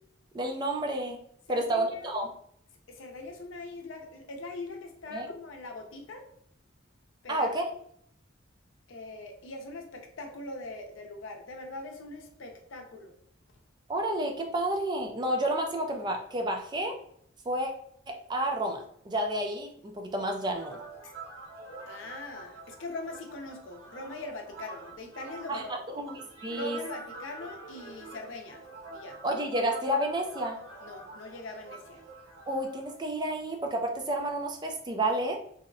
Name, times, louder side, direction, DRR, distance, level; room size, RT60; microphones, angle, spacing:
voice 1, 0.3-1.2 1.5-2.3 5.1-5.3 7.3-7.6 13.9-17.0 17.5-17.7 18.1-20.8 25.5-26.8 29.2-30.6 32.5-35.4, right 1 dB, 20° right, 2 dB, 0.3 m, -30 dB
voice 2, 1.5-2.2 2.9-6.2 7.2-7.6 8.9-13.1 21.0-21.1 21.9-25.8 26.5-28.6 28.9-29.2 30.8-32.0, left 2 dB, 80° left, 3 dB, 0.5 m, -42 dB
sound 1, 20.5-33.0, right 3 dB, 80° right, 0.7 m, -46 dB
2.6 x 2.0 x 2.5 m, 0.67 s
head